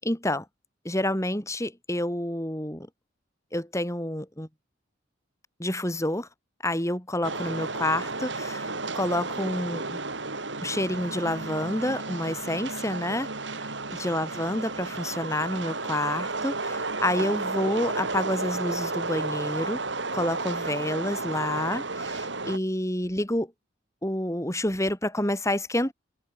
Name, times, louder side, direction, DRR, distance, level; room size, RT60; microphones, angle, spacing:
voice 1, 0.0-0.5 0.9-2.9 3.5-4.5 5.6-6.3 6.6-10.0 10.6-19.8 20.1-23.5 24.0-25.9, left 1 dB, 15° left, 5.4 m, -29 dB
sound 1, 7.2-22.6, right 3 dB, 65° right, 3.5 m, -32 dB
open air
head